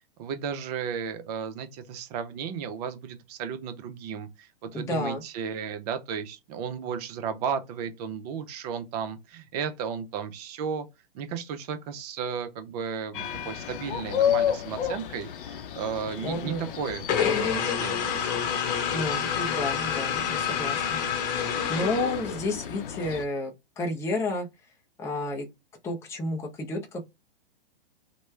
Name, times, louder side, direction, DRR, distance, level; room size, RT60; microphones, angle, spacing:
voice 1, 0.2-10.9 11.1-18.3, right 7 dB, 40° right, 0.7 m, -34 dB
voice 2, 4.7-5.2 16.2-16.6 18.9-21.0 21.7-24.5 25.0-25.5 25.8-27.1, left 2 dB, 10° left, 0.5 m, -31 dB
sound 1, 13.1-23.3, left 9 dB, 60° left, 0.7 m, -33 dB
sound 2, 17.1-22.7, left 7 dB, 30° left, 0.9 m, -28 dB
3.1 x 2.2 x 3.2 m
hypercardioid pair, 115°, 30 cm